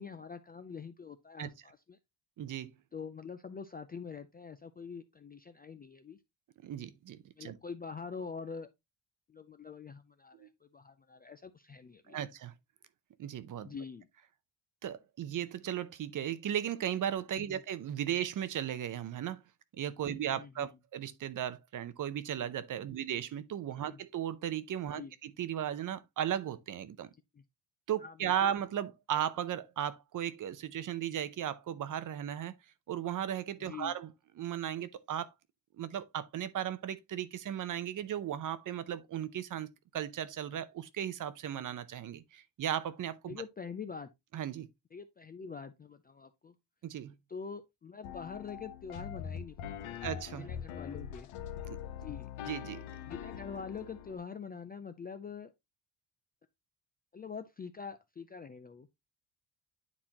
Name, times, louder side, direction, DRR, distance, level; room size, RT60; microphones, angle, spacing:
voice 1, 0.0-2.0 2.9-6.2 7.4-8.7 9.3-12.2 13.6-14.1 17.4-17.6 20.0-20.8 22.9-23.0 23.8-24.0 24.9-25.1 27.3-27.4 28.0-28.3 33.6-33.9 43.3-44.1 44.9-46.6 47.3-50.0 50.4-51.3 52.0-52.3 53.0-55.5 57.1-58.9, left 6 dB, 20° left, 0.3 m, -45 dB
voice 2, 2.4-2.7 6.6-7.6 10.4-10.5 12.1-12.5 13.2-13.7 14.8-19.4 19.8-27.1 27.9-32.5 32.9-34.1 34.4-35.3 35.8-43.4 44.3-44.7 46.8-47.1 50.0-50.5 51.6-51.8 52.5-52.8, right 10 dB, 40° right, 0.6 m, -36 dB
sound 1, 48.0-54.2, left 9 dB, 80° left, 1.1 m, -43 dB
9.7 x 4.2 x 2.9 m
cardioid pair, 145°, 47 cm